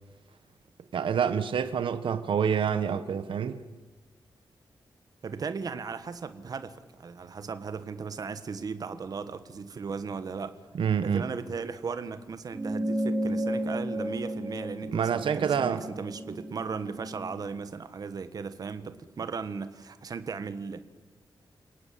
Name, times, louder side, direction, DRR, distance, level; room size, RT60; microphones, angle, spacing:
voice 1, 0.9-3.6 10.8-11.2 14.9-15.9, right 7 dB, 85° right, 1.2 m, -27 dB
voice 2, 5.2-10.6 11.0-20.8, right 5 dB, 50° right, 1.6 m, -37 dB
sound 1, 12.5-17.3, right 1 dB, 15° right, 5.2 m, -33 dB
29.0 x 18.5 x 8.6 m
wide cardioid pair, 175°, 8 cm